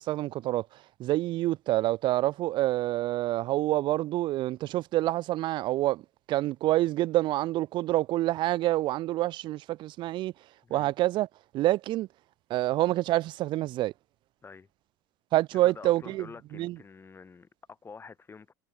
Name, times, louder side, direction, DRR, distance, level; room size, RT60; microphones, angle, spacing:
voice 1, 0.0-6.0 6.3-10.3 10.7-11.3 11.5-12.1 12.5-13.9 15.3-16.3 16.5-16.8, right 16 dB, 50° right, 0.5 m, -27 dB
voice 2, 15.5-18.5, left 5 dB, 25° left, 6.0 m, -48 dB
supercardioid pair, 95°, 10 cm